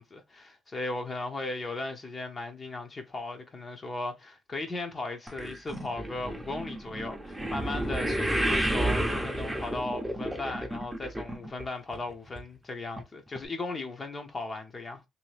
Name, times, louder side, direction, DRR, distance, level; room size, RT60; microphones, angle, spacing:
voice 1, 0.0-15.0, left 2 dB, 35° left, 0.6 m, -37 dB
sound 1, 5.3-11.7 11.9-12.4 13.0-13.1 13.4-13.5, right 1 dB, 10° right, 0.6 m, -31 dB
2.7 x 2.7 x 3.2 m
cardioid pair, 90°, 0 cm